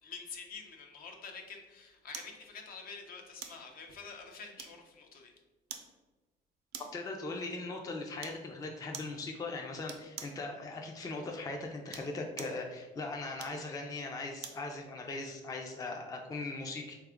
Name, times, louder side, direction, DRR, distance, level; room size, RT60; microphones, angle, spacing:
voice 1, 0.0-5.3, left 5 dB, 60° left, 3 dB, 0.7 m, -47 dB
sound 1, 2.1-2.4 3.4-3.7 4.6-5.0 5.7-5.9 6.7-7.1 8.2-8.4 8.9-9.2 9.9-10.4 11.8-12.6 13.4-14.7 15.1-15.2, right 8 dB, 75° right, 0.5 m, -46 dB
voice 2, 6.9-16.9, left 3 dB, 20° left, 2 dB, 0.4 m, -39 dB
3.7 x 2.3 x 3.4 m, 1.2 s
cardioid pair, 110°, 17 cm